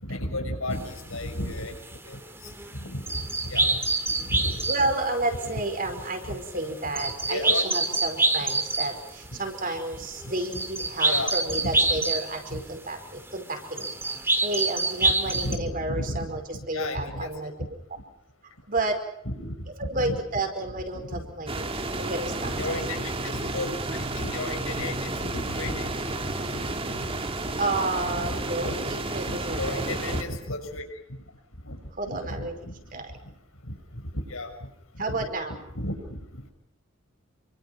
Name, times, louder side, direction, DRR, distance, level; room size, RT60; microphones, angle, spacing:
voice 1, 0.0-3.8 4.1-4.9 6.2-6.4 6.8-7.6 11.0-11.3 11.6-11.8 12.5-12.6 15.0-16.3 16.7-17.3 19.2-20.2 20.9-21.3 22.4-25.9 26.3-27.1 27.5-27.6 28.1-28.7 29.3-30.8 31.6-33.0 33.6-34.7 34.9-35.3 35.7-36.5, left 1 dB, 80° left, 4 dB, 6.6 m, -34 dB
sound 1, 0.7-0.8 1.3-1.4 1.8-5.0 5.3-12.7 13.1-13.4 13.7-15.6, right 2 dB, 10° right, 2.3 m, -27 dB
voice 2, 4.7-17.5 18.7-19.0 19.8-22.5 27.6-30.0 32.0-32.5 32.9-33.1 35.0-35.6, right 2 dB, 40° right, 5 dB, 5.1 m, -31 dB
sound 2, 21.5-30.2, right 2 dB, 25° right, 2.1 m, -31 dB
29.0 x 25.0 x 5.9 m, 0.75 s
head